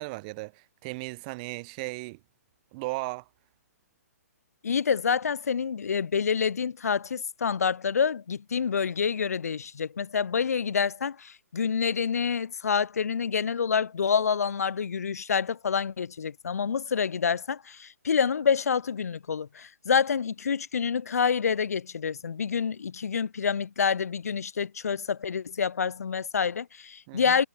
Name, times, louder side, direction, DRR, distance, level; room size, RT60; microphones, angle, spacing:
voice 1, 0.0-2.2 2.7-3.3 27.1-27.3, right 26 dB, 30° right, 0.8 m, -36 dB
voice 2, 4.6-27.5, left 6 dB, 70° left, 0.5 m, -27 dB
figure-of-eight pair, 130°, 9 cm